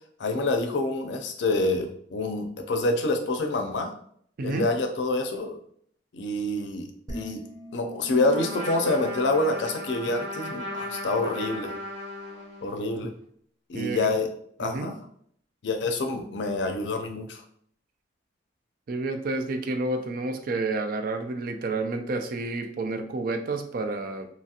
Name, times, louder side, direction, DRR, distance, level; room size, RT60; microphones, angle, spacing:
voice 1, 0.2-3.9 4.4-5.6 6.1-7.4 7.7-11.7 12.6-13.1 13.7-14.3 14.6-15.0 15.6-17.4, left 2 dB, 70° left, 5 dB, 0.5 m, -27 dB
voice 2, 4.4-4.7 13.7-14.1 14.6-14.9 18.9-24.3, right 2 dB, 50° right, 6 dB, 0.4 m, -30 dB
sound 1, 7.1-10.4, right 1 dB, 20° right, 0.7 m, -42 dB
Trumpet, 8.3-12.9, left 1 dB, 70° right, 1.1 m, -36 dB
2.9 x 2.4 x 2.8 m, 0.64 s
head